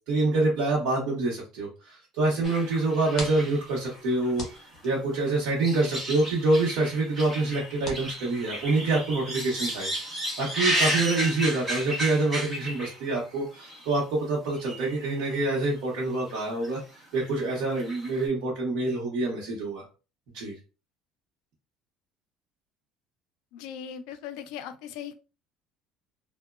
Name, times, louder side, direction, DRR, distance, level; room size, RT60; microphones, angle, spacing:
voice 1, 0.1-9.9 10.4-16.8 17.1-19.8 20.3-20.5, right 2 dB, 70° right, -5 dB, 0.8 m, -26 dB
sound 1, 2.4-4.9 5.2-13.2 13.5-13.9 14.5-15.0 15.3-15.4 16.3-16.7 16.9-18.2, right 1 dB, 15° right, 1.0 m, -33 dB
sound 2, 2.8-9.1, left 2 dB, 30° left, 0.8 m, -45 dB
voice 2, 23.5-25.1, left 8 dB, 75° left, 10 dB, 0.3 m, -39 dB
2.9 x 2.1 x 2.3 m, 0.33 s
cardioid pair, 170°, 0 cm